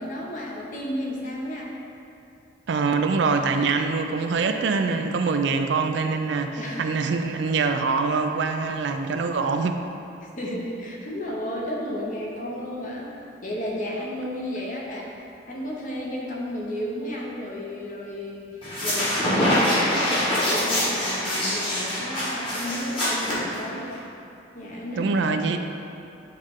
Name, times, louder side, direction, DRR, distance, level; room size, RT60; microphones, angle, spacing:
voice 1, 0.0-1.7 6.6-6.8 10.4-13.1 13.4-15.1 15.5-18.5 18.8-23.9 24.5-25.1, equal, 45° left, -3 dB, 0.9 m, -33 dB
voice 2, 2.7-9.8 25.0-25.6, right 4 dB, 70° right, 6 dB, 0.4 m, -24 dB
sound 1, 18.6-24.0, left 1 dB, 25° left, 1.4 m, -24 dB
8.4 x 3.1 x 3.6 m, 2.7 s
head